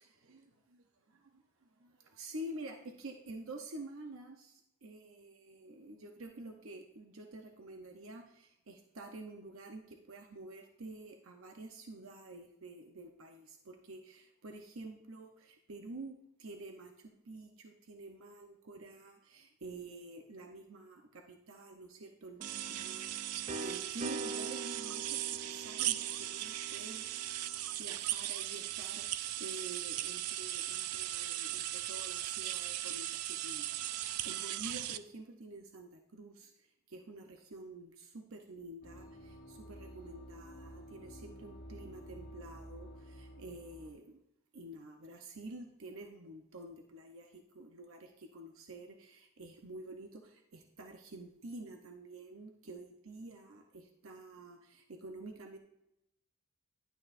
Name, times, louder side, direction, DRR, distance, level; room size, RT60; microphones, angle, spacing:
voice 1, 1.1-27.0 27.8-44.2 44.5-55.6, right 2 dB, 65° right, 4 dB, 0.8 m, -49 dB
sound 1, 22.4-28.1, right 2 dB, 30° right, 0.4 m, -45 dB
sound 2, 22.4-35.0, right 13 dB, 90° right, 0.4 m, -38 dB
sound 3, 38.8-43.9, equal, 40° left, 1.2 m, -51 dB
11.0 x 9.1 x 2.5 m, 0.83 s
head